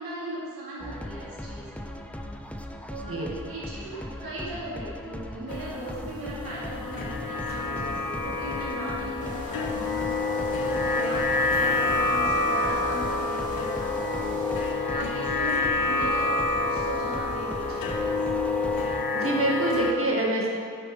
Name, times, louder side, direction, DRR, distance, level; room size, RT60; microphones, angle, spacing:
voice 1, 0.0-1.9 2.9-10.0 10.6-14.1 14.9-15.6 15.9-18.2, right 1 dB, 90° right, -7 dB, 2.1 m, -38 dB
sound 1, 0.8-19.0, equal, 5° left, 0.5 m, -38 dB
sound 2, 5.5-19.9, left 3 dB, 90° left, 0.7 m, -28 dB
sound 3, 9.2-14.7, left 1 dB, 20° left, 1.6 m, -43 dB
voice 2, 19.1-20.5, right 1 dB, 40° right, -3 dB, 1.9 m, -25 dB
10.5 x 5.7 x 3.5 m, 2.2 s
cardioid pair, 55°, 34 cm